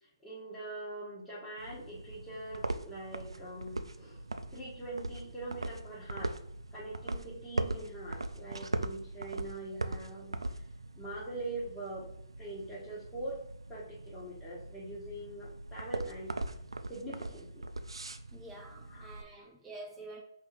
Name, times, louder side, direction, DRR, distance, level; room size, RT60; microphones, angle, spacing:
voice 1, 0.0-4.2 4.5-6.3 6.7-10.6 10.9-12.1 12.4-13.4 13.7-16.4 16.9-17.6 18.9-19.5, right 2 dB, 10° left, -10 dB, 1.2 m, -43 dB
sound 1, 1.6-19.2, right 2 dB, 85° right, 0.4 m, -40 dB
voice 2, 18.3-20.2, right 2 dB, 10° right, -2 dB, 0.5 m, -48 dB
4.1 x 2.9 x 4.1 m, 0.71 s
figure-of-eight pair, 135°, 3 cm